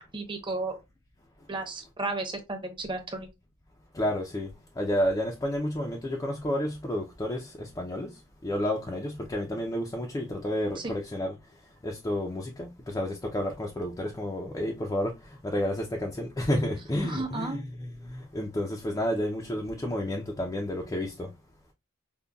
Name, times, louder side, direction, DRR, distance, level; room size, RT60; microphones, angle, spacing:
voice 1, 0.1-0.8 1.5-3.3 10.8-10.9 17.0-17.6, right 2 dB, 25° right, 0.8 m, -33 dB
voice 2, 3.9-11.3 11.8-21.3, left 1 dB, 15° left, 0.4 m, -31 dB
5.2 x 2.2 x 2.2 m
head